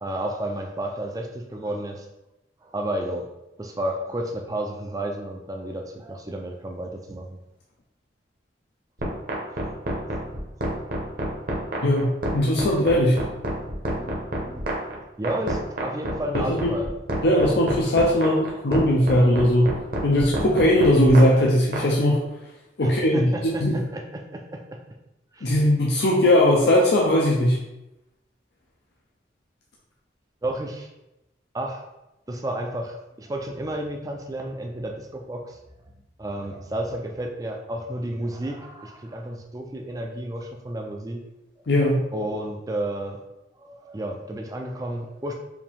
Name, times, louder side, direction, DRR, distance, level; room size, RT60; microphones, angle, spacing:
voice 1, 0.0-2.1 2.6-3.3 3.6-7.4 9.6-9.7 10.3-10.4 13.9-14.7 15.2-16.9 22.8-24.8 25.3-25.5 30.4-30.9 31.5-31.8 32.3-35.6 36.2-41.2 42.1-43.2 43.6-45.3, right 1 dB, 20° right, 2 dB, 0.4 m, -32 dB
sound 1, 9.0-21.8, right 1 dB, 55° right, 0.9 m, -28 dB
voice 2, 11.8-13.2 16.5-16.7 17.2-19.7 20.0-22.2 22.8-23.7 25.4-27.6 41.7-42.0, left 1 dB, 70° left, -3 dB, 0.6 m, -19 dB
4.8 x 2.7 x 3.5 m, 0.92 s
head